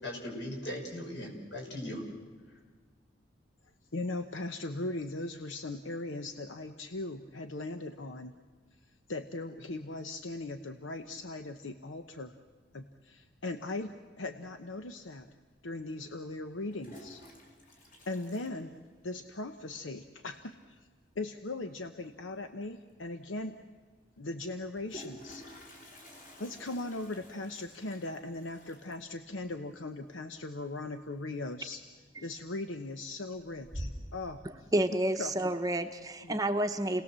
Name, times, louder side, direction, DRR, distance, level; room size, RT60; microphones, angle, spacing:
voice 1, 0.0-2.0, left 1 dB, 65° left, 1 dB, 5.9 m, -39 dB
voice 2, 3.9-8.3 9.1-12.3 12.7-15.3 15.6-17.2 18.1-18.7 19.0-20.9 21.2-23.6 24.2-25.4 26.4-31.8 32.2-34.4 35.2-35.3 36.2-36.4, left 2 dB, 80° left, 8 dB, 0.9 m, -39 dB
Toilet flush, 15.2-15.3 16.5-19.3 19.6-19.7 19.9-20.0 20.3-20.7 22.4-22.5 22.9-23.0 24.5-31.2 31.5-31.9 32.4-32.9 33.3-34.3, equal, 45° left, 4.8 m, -48 dB
voice 3, 34.7-37.0, right 1 dB, 20° right, 6 dB, 0.8 m, -29 dB
29.0 x 18.5 x 7.5 m, 1.5 s
head